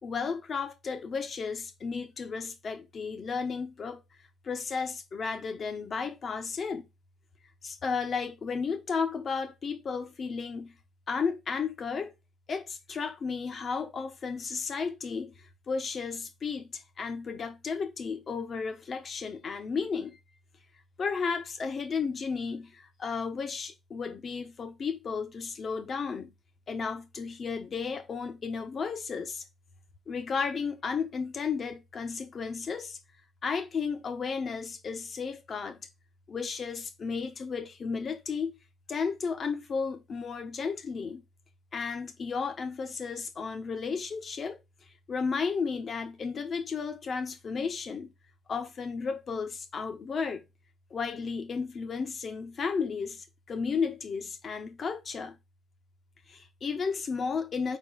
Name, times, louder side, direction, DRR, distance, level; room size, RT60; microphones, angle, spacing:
voice 1, 0.0-4.0 4.4-6.9 7.6-10.8 11.1-12.1 12.5-20.2 21.0-26.4 26.7-29.4 30.1-33.0 33.4-35.9 36.3-38.6 38.9-41.2 41.7-48.1 48.5-50.4 50.9-55.4 56.3-57.8, left 5 dB, 45° left, 1.3 m, -33 dB
4.6 x 4.3 x 5.6 m
cardioid pair, 90°, 0 cm